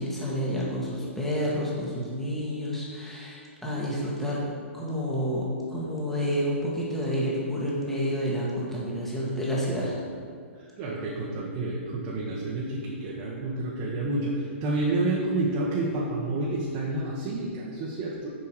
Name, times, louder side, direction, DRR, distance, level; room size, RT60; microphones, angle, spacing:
voice 1, 0.0-4.4 4.7-5.4 5.7-10.0, equal, 5° left, -6 dB, 1.9 m, -29 dB
voice 2, 10.6-18.3, right 2 dB, 35° right, -4 dB, 1.4 m, -29 dB
7.0 x 6.2 x 4.9 m, 2.1 s
hypercardioid pair, 125°, 7 cm